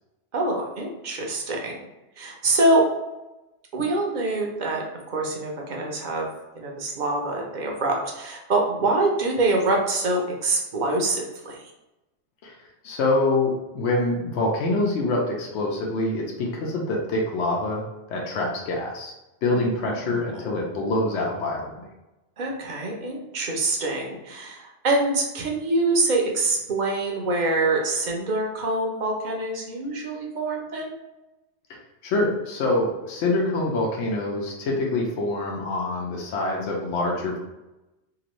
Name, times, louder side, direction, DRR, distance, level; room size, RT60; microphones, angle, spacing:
voice 1, 0.3-1.8 2.2-2.8 3.7-6.3 6.5-11.6 19.5-20.4 22.4-30.9, right 2 dB, 50° right, 0 dB, 0.6 m, -25 dB
voice 2, 12.8-17.8 18.1-19.1 19.4-21.7 32.0-37.4, left 2 dB, 80° left, -1 dB, 1.0 m, -25 dB
2.9 x 2.5 x 3.0 m, 1.0 s
omnidirectional pair, 1.2 m